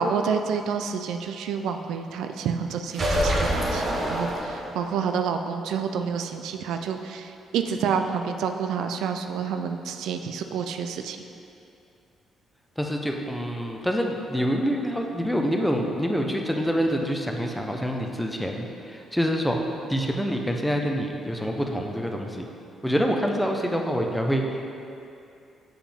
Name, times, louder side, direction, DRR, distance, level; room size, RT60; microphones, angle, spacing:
voice 1, 0.0-11.2, right 6 dB, 85° right, 6 dB, 0.3 m, -28 dB
sound 1, 2.9-5.0, equal, 40° right, 1.0 m, -26 dB
voice 2, 12.8-19.6 19.9-22.5 22.8-24.6, equal, 5° left, 2 dB, 0.6 m, -26 dB
7.5 x 4.8 x 3.4 m, 2.6 s
cardioid pair, 90°, 0 cm